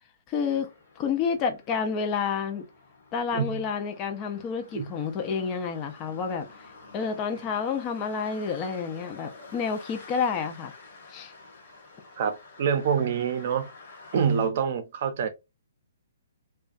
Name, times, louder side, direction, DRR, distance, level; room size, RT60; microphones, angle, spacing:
voice 1, 0.3-0.7 1.0-2.7 3.1-6.5 6.9-10.7 11.1-11.3, left 6 dB, 25° left, 0.4 m, -29 dB
sound 1, 0.5-14.5, left 3 dB, 60° left, 1.2 m, -50 dB
voice 2, 3.3-3.7 4.7-4.9 12.2-13.7 14.1-15.3, right 7 dB, 50° right, 0.5 m, -26 dB
2.4 x 2.2 x 2.4 m
hypercardioid pair, 150°, 0 cm